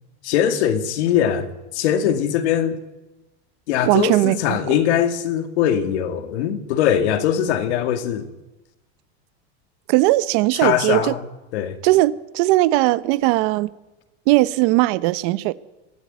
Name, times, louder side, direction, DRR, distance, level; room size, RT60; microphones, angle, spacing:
voice 1, 0.2-2.8 3.7-8.3 10.6-11.2 11.5-11.8, left 9 dB, 75° left, 2.5 m, -21 dB
voice 2, 3.8-4.8 9.9-11.1 11.8-13.7 14.3-15.5, right 18 dB, 50° right, 0.9 m, -18 dB
22.0 x 15.0 x 9.4 m
supercardioid pair, 160°, 34 cm